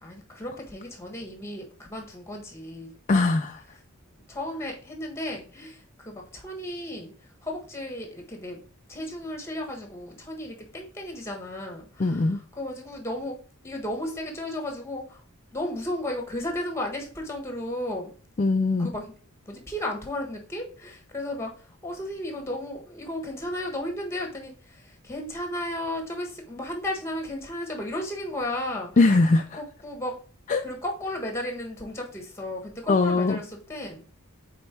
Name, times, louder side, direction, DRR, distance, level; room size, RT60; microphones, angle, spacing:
voice 1, 0.0-3.2 4.3-8.6 8.9-13.4 13.6-15.2 15.5-18.1 18.8-19.1 19.4-28.9 29.5-30.2 30.6-34.0, left 1 dB, 10° left, 1.4 m, -34 dB
voice 2, 3.1-3.6 12.0-12.4 18.4-18.9 29.0-29.6 30.5-30.6 32.9-33.4, left 3 dB, 35° left, 0.4 m, -21 dB
5.3 x 4.4 x 4.4 m
head